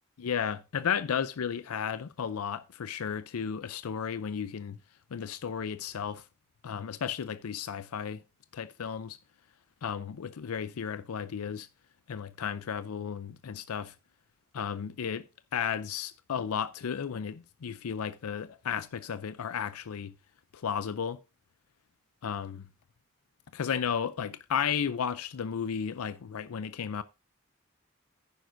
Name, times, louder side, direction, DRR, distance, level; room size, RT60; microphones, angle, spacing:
voice 1, 0.2-4.8 5.1-6.3 6.6-8.2 8.5-9.2 9.8-11.7 12.1-13.9 14.5-15.3 15.5-20.1 20.5-21.2 22.2-22.7 23.5-27.0, left 7 dB, 90° left, 0.5 m, -33 dB
10.5 x 9.4 x 2.6 m
head